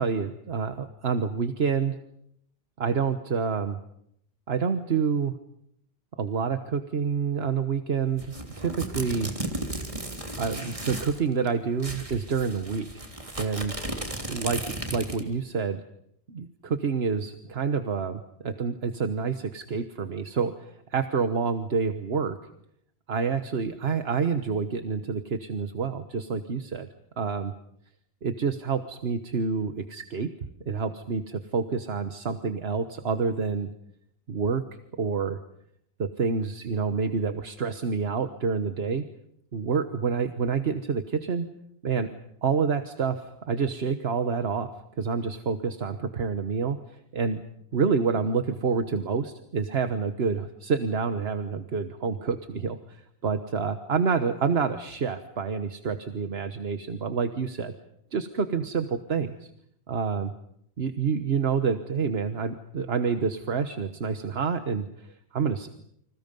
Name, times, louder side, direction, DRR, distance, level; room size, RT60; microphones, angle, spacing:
voice 1, 0.0-1.9 2.8-3.8 4.5-5.3 6.2-9.3 10.4-12.9 13.4-13.8 14.3-15.8 16.3-20.5 20.9-22.4 23.1-26.9 27.2-27.5 28.2-30.3 30.7-33.7 34.3-34.6 35.0-35.4 36.0-39.0 39.5-41.5 41.8-42.1 42.4-44.7 45.0-46.8 47.1-47.4 47.7-57.7 58.1-59.5 59.9-60.3 60.8-65.7, right 5 dB, 75° right, 9 dB, 1.5 m, -28 dB
sound 1, 8.2-11.2 11.5-11.6 11.8-15.3, right 1 dB, 30° right, 3.5 m, -35 dB
30.0 x 26.0 x 5.4 m, 0.73 s
omnidirectional pair, 1.1 m